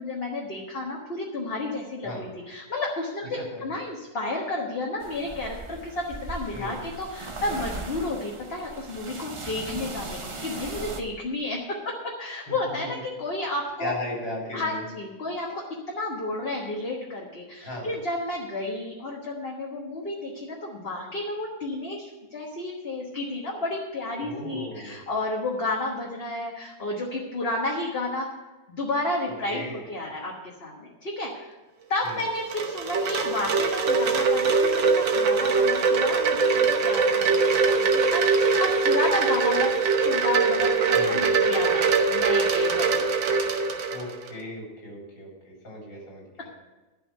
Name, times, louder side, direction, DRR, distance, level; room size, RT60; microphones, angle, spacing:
voice 1, 0.0-13.9 14.5-28.3 28.7-31.6 31.9-39.7 40.0-43.1 46.4-46.5, left 2 dB, 35° left, -2 dB, 1.5 m, -32 dB
sound 1, 5.0-11.0, right 2 dB, 55° right, 0.3 m, -38 dB
voice 2, 12.5-13.0 13.8-14.8 17.6-17.9 24.2-25.0 29.5-29.8 32.0-32.2 40.9-41.5 43.9-46.5, left 1 dB, 85° left, -3 dB, 4.6 m, -36 dB
Wind chime, 32.1-44.3, right 4 dB, 90° right, 1.8 m, -22 dB
12.0 x 5.7 x 9.2 m, 1.1 s
omnidirectional pair, 2.0 m